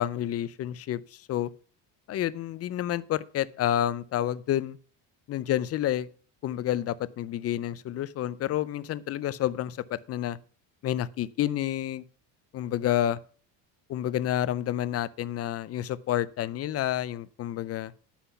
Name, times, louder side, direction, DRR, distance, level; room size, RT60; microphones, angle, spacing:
voice 1, 0.0-1.5 2.1-4.8 5.3-6.1 6.4-10.4 10.8-12.0 12.5-13.2 13.9-17.9, left 12 dB, 35° left, 0.5 m, -29 dB
9.9 x 5.8 x 5.6 m
cardioid pair, 135°, 43 cm